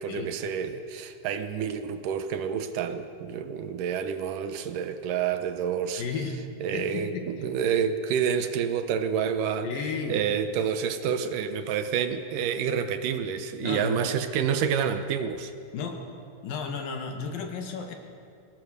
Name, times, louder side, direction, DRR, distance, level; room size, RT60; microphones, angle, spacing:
voice 1, 0.0-6.0 6.6-9.7 10.1-15.5, right 7 dB, 75° right, 9 dB, 2.5 m, -28 dB
voice 2, 6.0-6.4 6.7-7.3 9.6-10.2 13.6-14.0 15.7-16.0 16.4-17.9, left 5 dB, 80° left, 4 dB, 3.6 m, -33 dB
22.5 x 18.0 x 6.6 m, 2.4 s
omnidirectional pair, 4.0 m